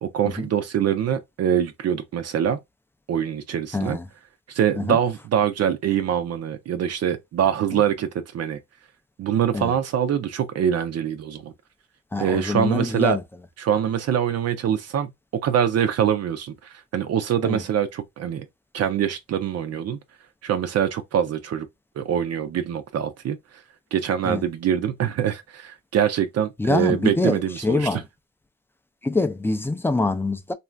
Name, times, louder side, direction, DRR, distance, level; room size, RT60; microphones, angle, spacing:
voice 1, 0.0-2.6 3.1-4.0 4.5-8.1 8.3-8.6 9.2-11.5 12.2-13.2 13.6-15.1 15.4-18.5 18.7-20.0 20.4-21.7 22.0-23.4 23.9-28.0, right 9 dB, 55° right, 0.5 m, -24 dB
voice 2, 3.7-4.1 4.8-5.0 9.5-9.7 12.1-13.2 17.4-17.6 24.3-24.4 26.6-28.0 29.0-30.5, left 2 dB, 10° left, 0.4 m, -24 dB
2.5 x 2.3 x 3.2 m
cardioid pair, 90°, 30 cm